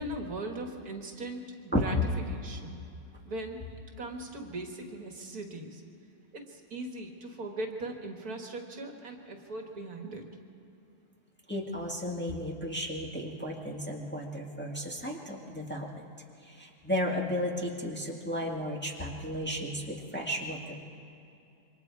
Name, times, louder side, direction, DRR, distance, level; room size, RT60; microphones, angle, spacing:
voice 1, 0.0-2.0 2.3-2.8 3.3-3.6 4.0-5.8 6.3-10.2, right 2 dB, 65° right, 2 dB, 2.3 m, -39 dB
voice 2, 11.5-16.1 16.4-20.7, equal, 5° left, -2 dB, 2.0 m, -34 dB
27.5 x 24.0 x 4.8 m, 2.7 s
omnidirectional pair, 1.7 m